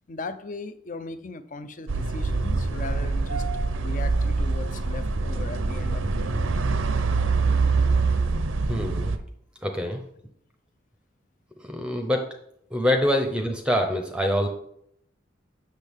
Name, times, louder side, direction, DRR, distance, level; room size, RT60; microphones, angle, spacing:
voice 1, 0.1-3.4 3.8-6.4, left 3 dB, 40° left, 0.5 m, -38 dB
sound 1, 1.9-9.2, right 3 dB, 90° right, 0.7 m, -24 dB
voice 2, 8.7-9.1 9.6-10.0 11.6-12.3 12.7-14.5, equal, 5° right, 0.6 m, -25 dB
8.1 x 6.4 x 3.5 m
head